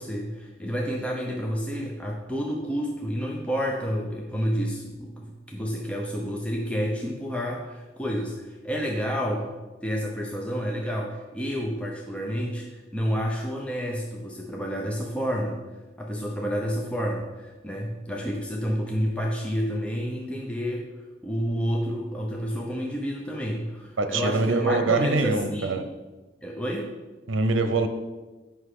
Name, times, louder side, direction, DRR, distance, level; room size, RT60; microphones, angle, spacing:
voice 1, 0.0-15.6 16.0-20.9 21.2-25.8 26.4-26.9, equal, 5° left, -1 dB, 0.6 m, -30 dB
voice 2, 24.0-25.8 27.3-27.9, right 3 dB, 85° right, 8 dB, 0.7 m, -24 dB
8.0 x 5.6 x 4.9 m, 1.2 s
head